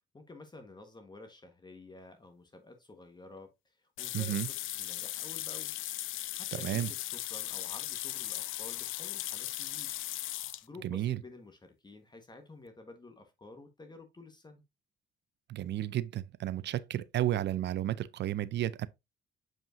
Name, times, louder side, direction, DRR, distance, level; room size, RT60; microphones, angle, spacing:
voice 1, 0.1-5.7 6.3-9.9 10.6-14.6, left 2 dB, 20° left, 1.3 m, -51 dB
sound 1, 4.0-10.6, left 15 dB, 85° left, 0.5 m, -38 dB
voice 2, 4.1-4.5 6.6-6.9 10.8-11.2 15.5-18.9, right 13 dB, 60° right, 0.4 m, -32 dB
7.2 x 5.3 x 2.6 m
cardioid pair, 90°, 20 cm